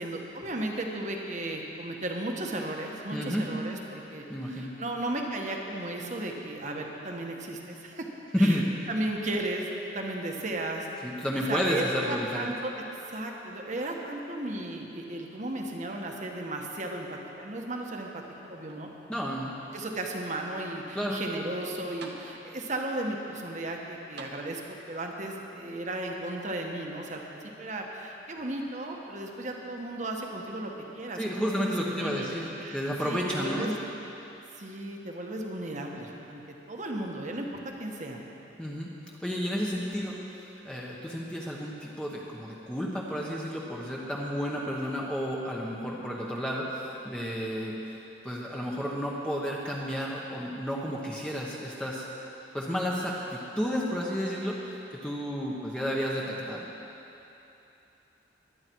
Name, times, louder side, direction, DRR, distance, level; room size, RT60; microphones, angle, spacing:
voice 1, 0.0-8.1 8.4-10.9 11.3-12.7 13.1-18.9 19.7-32.3 32.6-33.7 34.6-36.4 36.7-38.2, right 1 dB, 45° right, 1 dB, 1.4 m, -35 dB
voice 2, 3.1-3.5 4.3-4.7 8.3-8.6 11.0-12.5 19.1-19.5 20.9-21.2 31.1-33.8 38.6-38.9 39.2-48.0 48.2-52.0 52.5-56.7, equal, 5° left, -4 dB, 1.2 m, -31 dB
sound 1, 17.1-17.8 18.2-19.2 19.9-20.0 21.5-21.6 22.0-22.8 24.2-25.0 26.1-26.2, right 3 dB, 65° right, 1.2 m, -49 dB
22.5 x 9.7 x 4.7 m, 3.0 s
head